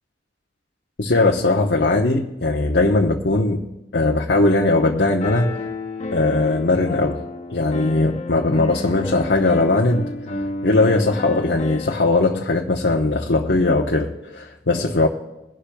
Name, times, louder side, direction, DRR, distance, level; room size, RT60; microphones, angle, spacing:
voice 1, 1.0-5.6 6.1-7.2 7.5-10.1 10.6-15.1, left 2 dB, 75° left, 1.0 m, -19 dB
Piano, 5.2-12.1, left 2 dB, 40° left, 0.9 m, -31 dB
21.5 x 11.5 x 2.3 m
head